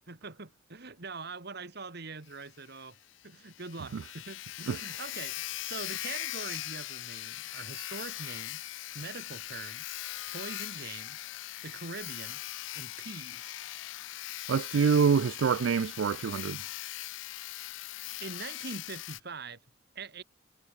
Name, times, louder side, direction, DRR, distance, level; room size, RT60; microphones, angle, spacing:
voice 1, 0.1-3.0 3.2-10.0 10.3-11.3 11.6-12.4 12.7-13.6 18.2-19.6 20.0-20.2, right 3 dB, 60° right, 2.2 m, -43 dB
Sawing, 2.3-2.4 2.7-2.8 3.2-3.3 3.5-19.2, left 15 dB, 70° left, 0.4 m, -40 dB
voice 2, 14.5-16.6, right 6 dB, 80° right, 0.4 m, -26 dB
head